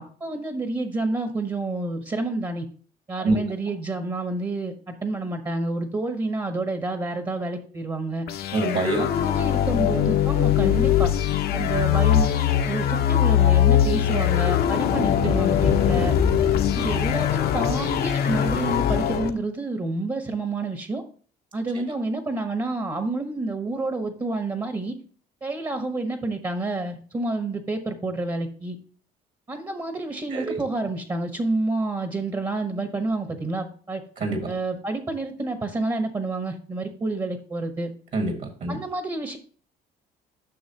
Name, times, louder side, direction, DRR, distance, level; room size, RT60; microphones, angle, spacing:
voice 1, 0.0-2.7 3.1-8.3 9.0-11.1 11.5-12.3 12.7-16.1 16.7-21.1 21.5-25.0 25.4-28.8 29.5-34.0 34.5-37.9 38.7-39.4, right 2 dB, 25° right, 6 dB, 1.0 m, -29 dB
sound 1, 8.3-19.3, left 10 dB, 65° left, 0.9 m, -21 dB
voice 2, 8.5-9.1 15.2-15.3 30.3-30.6 34.2-34.5 38.1-38.8, right 2 dB, 50° right, 4 dB, 1.7 m, -26 dB
9.4 x 6.1 x 2.9 m, 0.43 s
cardioid pair, 110°, 17 cm